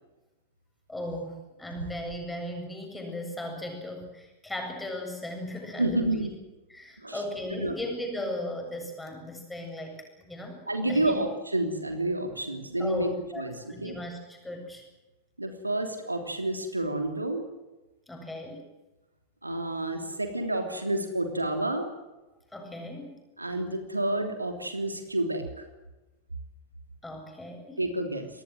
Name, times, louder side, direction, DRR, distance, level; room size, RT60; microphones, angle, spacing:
voice 1, 0.9-6.0 6.7-11.2 12.8-13.4 13.7-14.8 18.1-18.6 22.5-23.2 27.0-27.8, left 1 dB, 5° left, 3 dB, 7.9 m, -37 dB
voice 2, 5.8-6.3 7.0-7.2 7.5-7.7 10.7-13.1 13.4-13.5 13.8-13.9 15.4-17.5 19.4-21.9 23.4-25.6 27.8-28.3, right 1 dB, 85° right, 6 dB, 3.1 m, -29 dB
26.5 x 19.5 x 7.8 m, 1.1 s
figure-of-eight pair, 90°, 0 cm